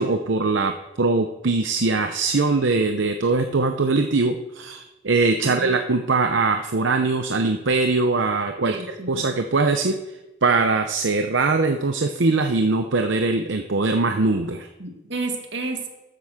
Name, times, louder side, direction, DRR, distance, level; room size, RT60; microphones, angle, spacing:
voice 1, 0.0-8.8 9.1-10.0 10.4-14.7, right 3 dB, 90° right, 6 dB, 0.8 m, -21 dB
voice 2, 5.4-5.8 8.6-9.3 14.8-15.9, right 3 dB, 75° right, 3 dB, 2.1 m, -31 dB
13.0 x 8.1 x 6.5 m, 1.0 s
head